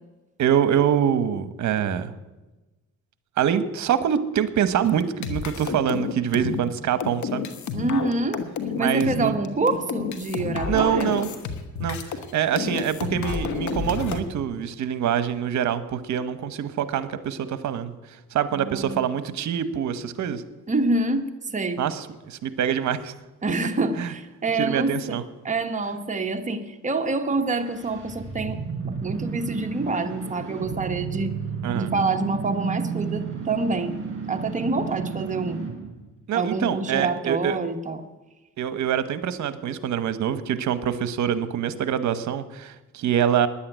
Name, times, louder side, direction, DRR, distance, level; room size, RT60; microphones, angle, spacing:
voice 1, 0.4-2.1 3.4-7.5 8.8-9.4 10.6-11.3 11.8-20.4 21.8-23.1 24.0-24.1 24.5-25.2 31.6-31.9 36.3-37.6 38.6-43.5, right 9 dB, 70° right, 13 dB, 1.0 m, -25 dB
sound 1, 4.8-12.3 12.6-14.2, left 6 dB, 70° left, 1.3 m, -30 dB
voice 2, 7.7-8.4 8.8-11.1 18.5-19.1 20.7-21.8 23.4-25.2 25.4-28.6 28.8-31.3 31.8-34.0 34.3-35.6 36.3-38.0, right 3 dB, 25° right, 5 dB, 1.2 m, -26 dB
sound 2, 27.3-35.9, right 6 dB, 40° right, 5.7 m, -32 dB
10.0 x 8.6 x 9.1 m, 1.1 s
cardioid pair, 90°, 30 cm